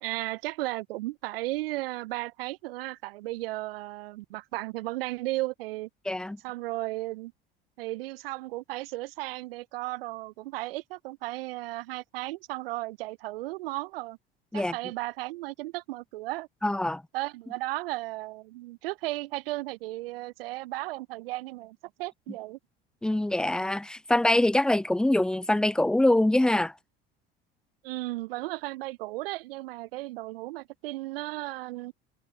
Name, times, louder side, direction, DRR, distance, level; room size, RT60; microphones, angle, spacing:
voice 1, 0.0-5.9 6.4-7.3 7.8-14.2 14.5-16.5 17.1-22.6 27.8-31.9, right 19 dB, 70° right, 0.8 m, -35 dB
voice 2, 6.1-6.4 14.5-14.7 16.6-17.0 23.0-26.7, left 1 dB, 5° left, 0.3 m, -24 dB
figure-of-eight pair, 65°, 31 cm